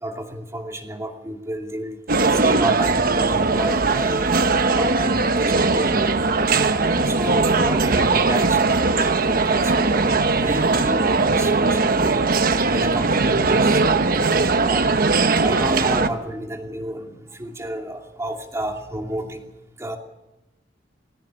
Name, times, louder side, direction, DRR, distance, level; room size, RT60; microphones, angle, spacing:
voice 1, 0.0-2.0 2.3-4.4 4.7-6.0 6.5-14.0 14.6-14.9 15.4-19.4 19.8-20.0, right 1 dB, 15° right, 3 dB, 2.6 m, -31 dB
Singaporian Food court ambience, 2.1-16.1, right 3 dB, 50° right, 1.0 m, -19 dB
19.5 x 18.5 x 7.0 m, 0.99 s
head